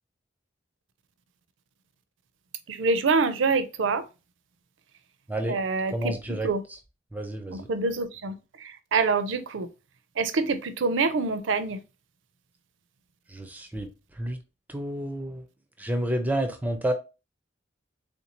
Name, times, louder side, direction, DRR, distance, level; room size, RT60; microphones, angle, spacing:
voice 1, 2.7-4.0 5.5-6.1 6.4-6.6 7.5-9.7 10.2-11.8, right 4 dB, 70° right, 0.5 m, -26 dB
voice 2, 5.3-5.6 5.9-6.5 7.1-7.7 13.3-14.4 14.7-15.4 15.8-16.9, right 1 dB, 10° right, 0.4 m, -30 dB
3.5 x 2.6 x 2.9 m
head